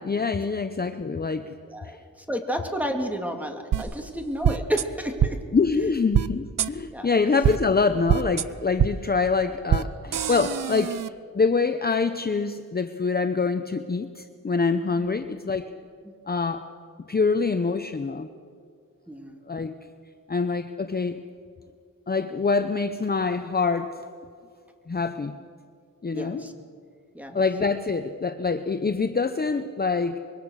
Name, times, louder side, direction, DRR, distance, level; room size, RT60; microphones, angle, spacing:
voice 1, 0.0-1.5 1.8-2.0 5.5-11.0 11.3-15.7 16.3-16.7 17.1-18.3 19.5-19.7 20.3-21.2 22.1-23.9 24.9-25.4 26.0-26.4 27.3-30.2, left 4 dB, 30° left, 8 dB, 0.7 m, -25 dB
voice 2, 1.7-2.0 2.3-5.4 6.9-7.2 15.0-15.2 16.0-16.1 19.1-19.4 26.1-26.5 27.1-27.4, equal, 5° right, 3 dB, 2.4 m, -31 dB
sound 1, 3.7-3.8 4.4-4.8 5.2-5.3 6.1-6.3 6.6-6.7 7.4-7.6 8.1-8.4 8.8-8.9 9.7-9.8 10.1-11.1, right 9 dB, 75° right, 0.7 m, -23 dB
25.0 x 22.5 x 6.4 m, 2.2 s
wide cardioid pair, 125°, 34 cm